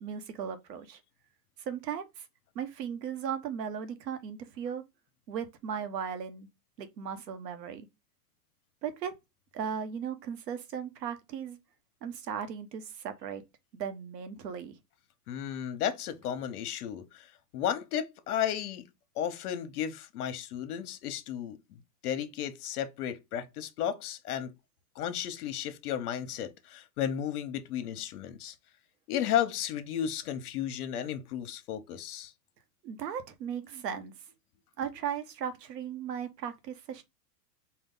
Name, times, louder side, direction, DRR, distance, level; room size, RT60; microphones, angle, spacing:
voice 1, 0.0-1.0 1.6-2.2 2.5-4.8 5.3-6.5 6.8-7.9 8.8-9.1 9.5-11.6 12.0-13.4 13.7-14.8 32.8-34.1 34.8-37.0, right 8 dB, 80° right, 1.3 m, -37 dB
voice 2, 15.3-18.9 19.2-24.5 24.9-28.5 29.1-32.3, left 10 dB, 65° left, 1.0 m, -34 dB
4.5 x 2.4 x 3.7 m
supercardioid pair, 155°, 48 cm